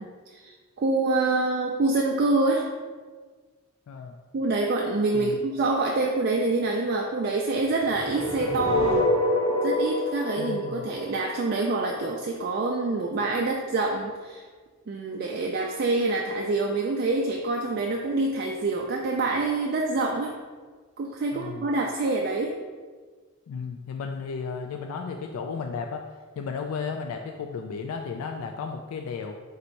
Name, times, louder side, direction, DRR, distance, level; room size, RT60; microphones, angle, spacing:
voice 1, 0.0-2.7 4.3-9.0 9.6-14.4 14.9-20.3 21.0-22.6, right 3 dB, 45° right, 0 dB, 0.3 m, -26 dB
voice 2, 3.9-4.2 5.1-5.4 10.4-10.9 21.3-21.7 23.5-26.0 26.4-29.4, left 5 dB, 80° left, 3 dB, 0.3 m, -34 dB
sound 1, 7.8-11.9, left 1 dB, 45° left, 1.2 m, -26 dB
4.0 x 2.6 x 4.3 m, 1.4 s
head